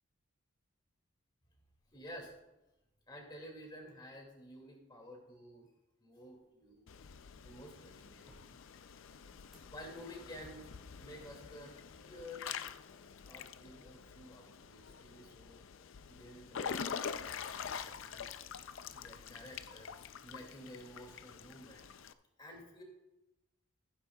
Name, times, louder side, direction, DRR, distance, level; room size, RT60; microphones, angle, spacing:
voice 1, 1.9-2.3 3.1-5.7 6.0-6.8 7.4-8.3 9.7-10.6 11.0-12.4 13.2-15.6 16.1-18.3 18.9-21.9 22.4-22.8, equal, 20° left, 0 dB, 2.3 m, -52 dB
sound 1, 6.3-13.3, equal, ahead, 2.7 m, -65 dB
Water / Splash splatter / Drip, 6.9-22.1, left 7 dB, 55° left, 0.4 m, -46 dB
16.0 x 9.7 x 2.3 m, 0.97 s
head